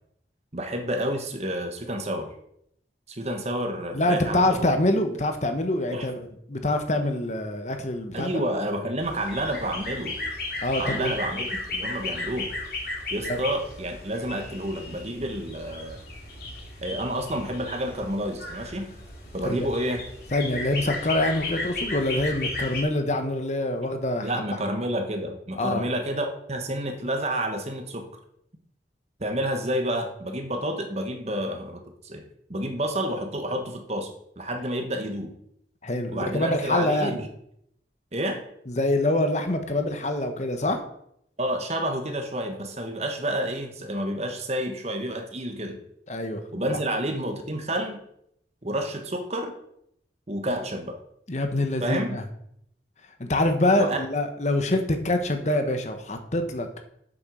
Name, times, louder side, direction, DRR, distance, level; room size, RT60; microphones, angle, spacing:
voice 1, 0.5-2.3 3.1-4.7 5.9-6.1 8.1-10.2 10.8-12.5 13.1-16.0 16.8-18.9 19.3-20.0 24.2-28.0 29.2-32.2 32.5-34.1 34.4-35.3 36.1-37.3 38.1-38.4 41.4-45.8 46.5-48.0 48.6-49.5 50.3-51.0 51.8-52.2 53.8-54.0, right 1 dB, 35° right, 5 dB, 1.5 m, -29 dB
voice 2, 3.9-8.3 10.6-11.1 13.3-13.4 19.4-19.7 20.3-24.3 25.6-25.8 35.8-37.2 38.7-40.8 46.1-46.8 51.3-52.2 53.2-56.7, left 1 dB, 40° left, 6 dB, 1.2 m, -25 dB
sound 1, 9.0-22.8, left 2 dB, 55° left, 3.0 m, -35 dB
8.0 x 7.3 x 6.3 m, 0.73 s
head